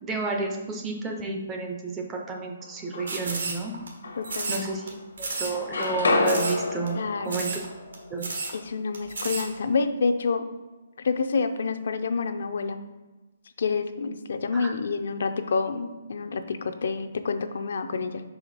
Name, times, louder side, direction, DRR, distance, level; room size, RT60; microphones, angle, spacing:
voice 1, 0.0-3.8 4.5-7.6 8.1-8.4 14.5-14.7, right 4 dB, 10° right, 2 dB, 0.4 m, -31 dB
sound 1, 2.6-3.5 4.0-5.1 5.3-9.3, left 3 dB, 80° left, 0.9 m, -30 dB
sound 2, 3.1-3.9 4.2-4.9 5.2-5.6 5.8-5.9 6.2-6.6 6.9-7.0 7.3-7.7 7.9-8.0 8.2-8.5 8.9-9.5, right 3 dB, 85° right, 1.4 m, -32 dB
voice 2, 4.2-4.7 6.9-7.4 8.5-10.5 11.0-12.8 13.6-18.2, left 4 dB, 60° left, 8 dB, 0.4 m, -28 dB
5.1 x 4.8 x 3.9 m, 1.2 s
hypercardioid pair, 175°, 0 cm